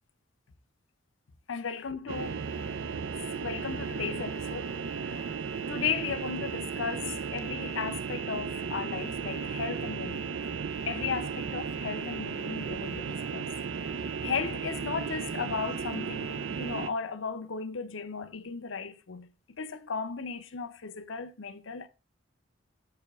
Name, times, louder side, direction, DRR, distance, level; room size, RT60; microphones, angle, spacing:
voice 1, 1.5-2.3 3.0-3.1 3.4-5.4 5.7-10.4 10.9-19.3 19.6-21.9, left 5 dB, 80° left, 0.7 m, -36 dB
sound 1, 2.1-16.9, right 6 dB, 75° right, 0.5 m, -35 dB
6.8 x 3.2 x 6.0 m
head